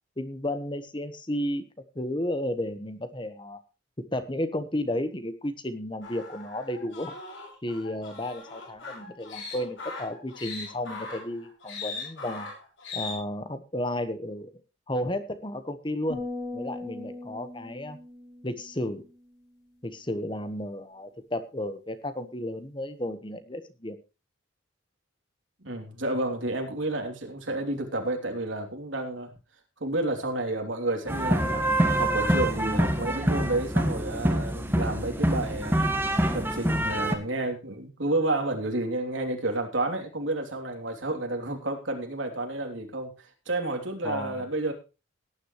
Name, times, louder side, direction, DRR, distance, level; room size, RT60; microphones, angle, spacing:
voice 1, 0.2-1.6 1.9-3.6 4.1-7.1 7.6-12.5 12.9-14.5 14.9-16.2 16.5-18.0 18.4-19.0 19.8-24.0 44.0-44.4, left 1 dB, 25° left, 10 dB, 1.2 m, -33 dB
sound 1, 6.0-13.1, left 4 dB, 75° left, 6.3 m, -40 dB
sound 2, 16.1-19.5, left 2 dB, 55° left, 5.0 m, -39 dB
voice 2, 25.6-29.3 29.8-31.7 32.0-35.8 36.3-43.1 43.5-44.7, right 2 dB, 80° right, 3 dB, 3.1 m, -30 dB
sound 3, 31.1-37.1, right 1 dB, 10° right, 1.6 m, -25 dB
18.0 x 10.0 x 3.1 m, 0.31 s
head